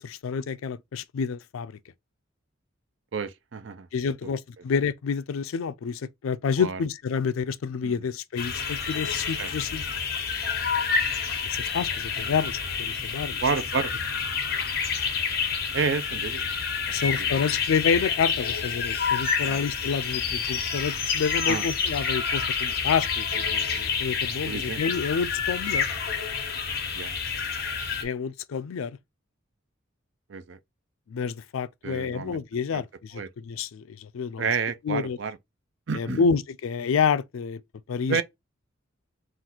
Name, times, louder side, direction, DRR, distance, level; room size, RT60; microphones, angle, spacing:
voice 1, 0.0-1.7 3.9-9.9 11.4-13.4 16.9-25.9 28.0-29.0 31.1-34.6 34.8-35.2 35.9-37.6 37.9-38.2, left 6 dB, 80° left, 0.4 m, -28 dB
voice 2, 3.1-3.9 6.6-6.8 7.8-8.0 9.4-9.5 13.4-13.9 15.7-16.4 16.9-17.0 19.5-19.6 21.5-21.7 24.5-24.8 26.9-27.1 30.3-30.6 31.8-32.4 32.7-32.8 33.1-33.3 34.4-35.4 35.9-36.2 38.1-38.2, right 5 dB, 65° right, 0.5 m, -29 dB
sound 1, 8.4-28.0, left 6 dB, 50° left, 1.0 m, -28 dB
3.8 x 2.4 x 4.2 m
head